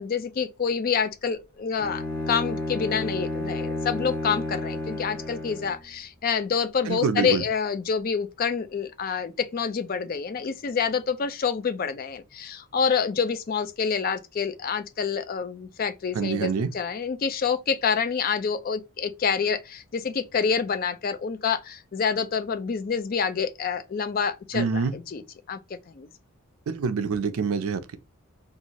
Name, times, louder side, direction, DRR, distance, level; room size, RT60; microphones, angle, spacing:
voice 1, 0.0-25.2 25.5-25.6 25.9-26.1, left 6 dB, 40° left, 0.4 m, -27 dB
Bowed string instrument, 1.8-5.8, left 2 dB, 10° left, 0.8 m, -31 dB
voice 2, 6.9-7.5 16.1-16.7 24.5-24.9 26.7-28.0, right 5 dB, 75° right, 0.4 m, -26 dB
2.6 x 2.4 x 2.8 m
head